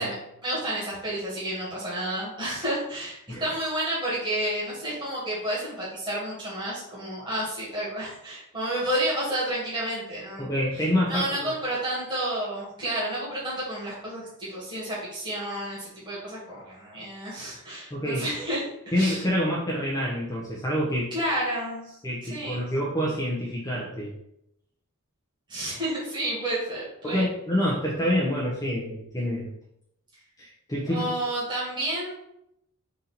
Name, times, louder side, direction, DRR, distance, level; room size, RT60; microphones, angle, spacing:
voice 1, 0.0-10.5 11.1-19.2 21.1-21.8 22.3-22.6 25.5-27.3 30.9-32.1, right 1 dB, 20° right, -8 dB, 1.6 m, -30 dB
voice 2, 10.4-11.5 17.9-18.2 18.9-21.1 22.0-24.1 27.0-29.5 30.4-31.1, equal, 15° left, -4 dB, 0.6 m, -27 dB
3.8 x 2.8 x 4.1 m, 0.79 s
head